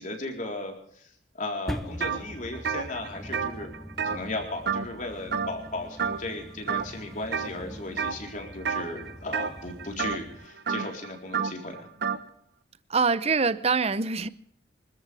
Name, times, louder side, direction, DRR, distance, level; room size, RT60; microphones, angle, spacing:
voice 1, 0.0-3.7 4.0-11.9, left 2 dB, 45° left, 4.0 m, -36 dB
sound 1, 1.7-10.5, equal, ahead, 0.8 m, -42 dB
sound 2, 2.0-2.2 2.5-5.0 5.3-5.7 6.0-6.4 6.7-7.5 8.0-8.3 8.6-12.2, right 6 dB, 60° right, 1.1 m, -30 dB
voice 2, 12.9-14.3, right 4 dB, 35° right, 0.7 m, -24 dB
26.0 x 13.5 x 3.4 m
head